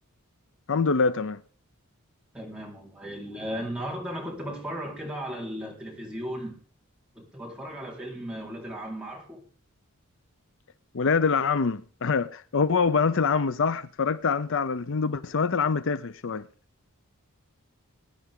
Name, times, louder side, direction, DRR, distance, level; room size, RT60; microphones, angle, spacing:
voice 1, 0.7-1.4 10.9-16.5, left 5 dB, 55° left, 0.6 m, -25 dB
voice 2, 2.3-6.6 7.1-9.4, equal, 5° right, 4.3 m, -36 dB
21.0 x 10.0 x 3.7 m
head